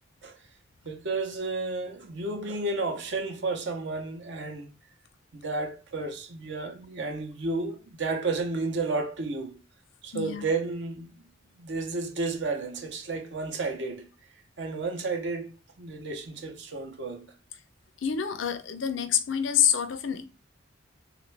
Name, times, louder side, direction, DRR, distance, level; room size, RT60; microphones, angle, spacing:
voice 1, 0.8-4.7 5.4-9.6 10.0-11.1 11.6-14.1 14.6-15.5 15.8-17.3, right 3 dB, 65° right, 0.7 m, -32 dB
voice 2, 10.1-10.4 18.0-20.2, left 9 dB, 75° left, 0.5 m, -27 dB
3.4 x 2.5 x 3.2 m
head